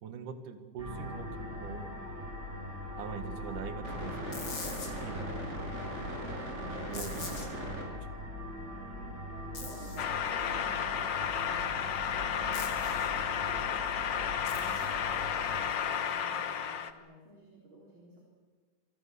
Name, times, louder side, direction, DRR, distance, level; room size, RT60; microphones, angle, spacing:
voice 1, 0.0-1.9 3.0-4.3 5.0-5.2 6.9-7.5 7.8-8.1, right 7 dB, 75° right, 8 dB, 3.2 m, -43 dB
sound 1, 0.8-15.7, equal, 20° right, 6.1 m, -40 dB
voice 2, 3.1-5.4 5.6-6.5 9.0-18.2, right 1 dB, 35° right, -2 dB, 4.6 m, -54 dB
sound 2, 4.3-4.9 6.9-7.5 9.5-10.0 12.5-13.1 14.4-14.9, left 4 dB, 40° left, 3.7 m, -43 dB
sound 3, 10.0-16.9, left 8 dB, 80° left, 1.0 m, -32 dB
27.5 x 24.0 x 7.0 m, 1.5 s
omnidirectional pair, 3.7 m